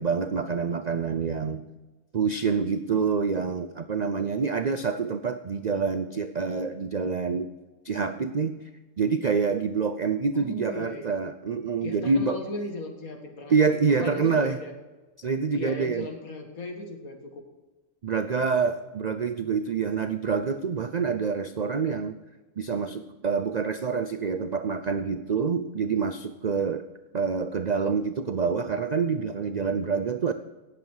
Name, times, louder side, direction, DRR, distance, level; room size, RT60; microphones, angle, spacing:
voice 1, 0.0-1.7 2.1-7.5 7.8-8.6 9.0-12.4 13.5-14.6 15.2-16.1 18.0-22.2 22.6-26.8 27.1-30.3, right 5 dB, 75° right, 9 dB, 0.4 m, -26 dB
voice 2, 10.3-11.1 11.8-14.7 15.5-17.4 18.3-18.7, left 2 dB, 70° left, 3 dB, 2.3 m, -37 dB
18.0 x 7.8 x 4.8 m, 1.2 s
omnidirectional pair, 1.5 m